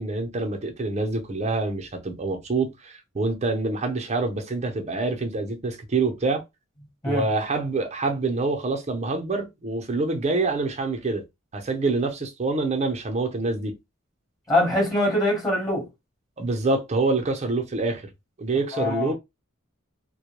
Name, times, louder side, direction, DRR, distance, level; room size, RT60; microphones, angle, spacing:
voice 1, 0.0-6.4 7.1-11.2 11.5-13.8 16.4-18.0 18.4-19.1, right 3 dB, 35° right, 0.6 m, -26 dB
voice 2, 14.5-15.9 18.7-19.1, left 1 dB, 15° left, 1.1 m, -23 dB
2.2 x 2.1 x 3.0 m
head